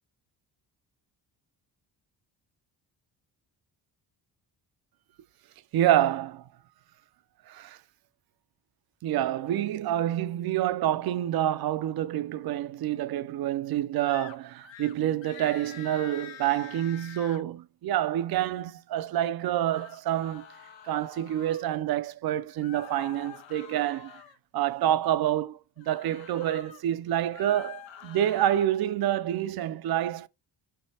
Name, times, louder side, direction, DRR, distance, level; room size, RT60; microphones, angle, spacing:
voice 1, 5.7-6.4 7.5-7.8 9.0-20.5 20.8-24.2 24.5-30.3, right 12 dB, 60° right, 0.5 m, -27 dB
sound 1, 14.1-14.4 14.6-14.9 15.2-17.4 19.5-21.7 22.6-24.4 25.8-26.8 27.2-28.7, left 9 dB, 90° left, 0.7 m, -47 dB
5.2 x 3.3 x 2.8 m
cardioid pair, 85°, 43 cm